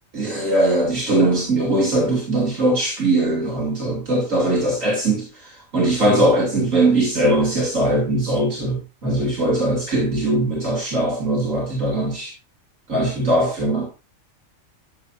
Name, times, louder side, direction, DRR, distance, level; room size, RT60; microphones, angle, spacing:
voice 1, 0.1-12.3 12.9-13.9, right 1 dB, 80° right, 3.0 m, -20 dB
13.5 x 7.1 x 2.7 m
omnidirectional pair, 1.4 m